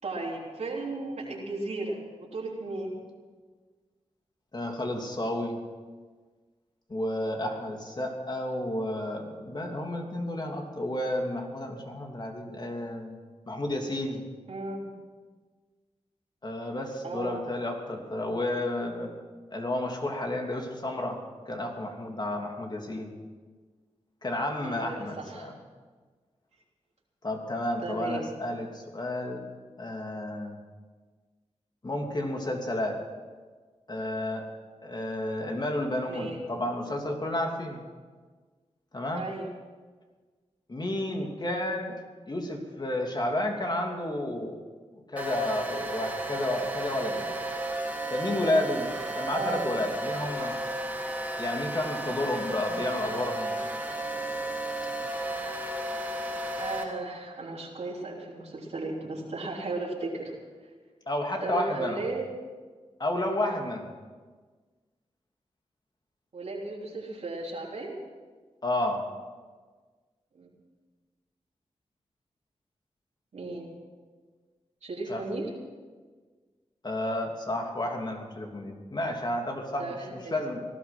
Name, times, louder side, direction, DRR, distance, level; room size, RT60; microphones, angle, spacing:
voice 1, 0.0-2.9 14.5-14.9 17.0-17.4 24.6-25.5 27.8-28.3 36.1-36.4 39.1-39.5 49.3-49.6 56.6-60.3 61.4-62.3 66.3-68.0 70.3-70.5 73.3-73.7 74.8-75.5 79.8-80.3, right 2 dB, 70° right, -3 dB, 3.5 m, -35 dB
voice 2, 4.5-5.6 6.9-13.2 13.5-14.2 16.4-19.1 19.5-23.1 24.2-25.5 27.2-29.4 29.8-30.6 31.8-33.0 33.9-34.5 34.8-37.8 38.9-39.2 40.7-42.0 42.3-44.6 45.1-47.4 48.1-48.9 49.1-50.6 51.4-53.5 61.1-62.1 63.0-63.9 68.6-69.0 75.1-75.2 76.8-80.6, left 1 dB, 40° left, 2 dB, 3.0 m, -31 dB
sound 1, 45.2-56.8, right 1 dB, 10° right, 3.4 m, -33 dB
18.5 x 12.5 x 6.1 m, 1.5 s
cardioid pair, 60°, 12 cm